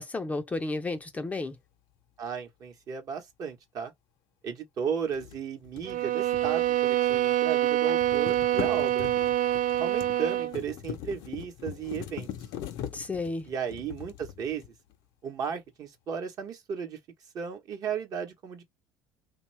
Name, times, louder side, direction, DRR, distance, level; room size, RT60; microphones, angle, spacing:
voice 1, 0.0-1.6 12.9-13.5, left 3 dB, 20° left, 0.4 m, -32 dB
voice 2, 2.2-3.9 4.4-9.1 9.8-12.3 13.5-14.6 15.2-17.0 17.3-18.6, right 7 dB, 50° right, 0.9 m, -34 dB
sound 1, 5.1-7.4 7.6-14.9, left 10 dB, 70° left, 0.6 m, -41 dB
sound 2, 5.8-10.6, right 13 dB, 80° right, 0.4 m, -26 dB
2.6 x 2.2 x 3.1 m
supercardioid pair, 90°, 8 cm